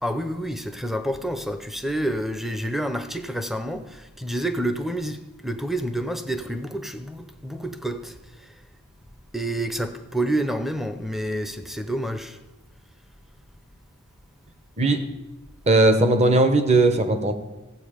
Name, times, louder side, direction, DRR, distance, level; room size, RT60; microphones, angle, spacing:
voice 1, 0.0-8.5 9.3-12.4, right 1 dB, ahead, 0.5 m, -29 dB
voice 2, 15.7-17.3, right 2 dB, 30° right, 0.9 m, -18 dB
15.5 x 7.6 x 5.0 m
head